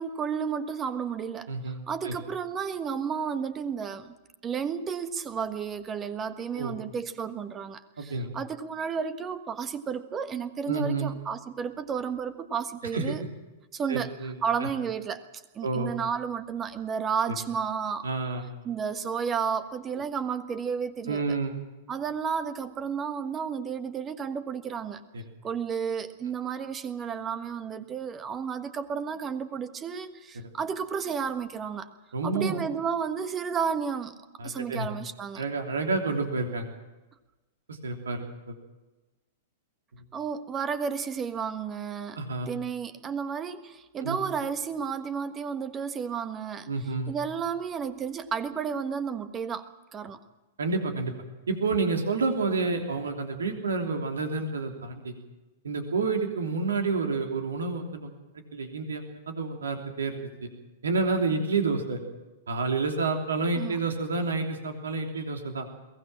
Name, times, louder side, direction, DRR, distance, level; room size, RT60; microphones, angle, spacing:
voice 1, 0.0-4.1 4.4-13.2 13.7-15.2 15.5-18.1 18.6-21.4 21.9-25.0 25.4-31.9 32.2-34.2 34.4-35.4 40.1-42.2 42.5-46.7 47.1-49.7 49.9-50.2 63.5-63.8, right 6 dB, 20° right, 11 dB, 1.4 m, -32 dB
voice 2, 1.5-1.8 2.0-2.1 6.5-6.7 8.0-8.3 10.7-11.1 12.9-13.2 13.9-14.3 14.6-14.7 15.6-15.9 18.0-18.4 21.1-21.6 25.1-25.2 30.3-30.5 32.1-32.6 34.4-34.9 35.4-36.7 37.7-38.6 42.1-42.5 44.0-44.2 46.7-47.1 50.6-51.1 51.5-55.1 55.6-58.1 58.5-60.2 60.8-62.0 62.5-65.7, right 3 dB, 70° right, 4 dB, 3.1 m, -29 dB
22.5 x 17.5 x 7.4 m, 1.1 s
figure-of-eight pair, 100°, 0 cm